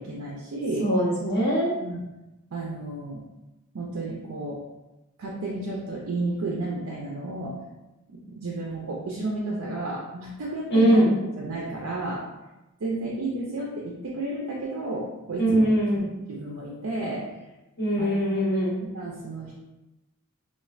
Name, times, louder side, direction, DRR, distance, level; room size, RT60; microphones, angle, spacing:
voice 1, 0.0-0.9 1.8-2.0 2.5-3.2 3.7-4.6 5.2-7.5 8.1-11.0 11.4-12.2 12.8-15.7 15.9-17.3 18.0-18.4 18.8-19.5, right 2 dB, 70° right, -3 dB, 0.5 m, -32 dB
voice 2, 0.8-1.7 10.7-11.1 15.4-16.1 17.8-18.8, right 1 dB, 50° left, -7 dB, 1.1 m, -21 dB
3.2 x 2.3 x 2.4 m, 1.0 s
head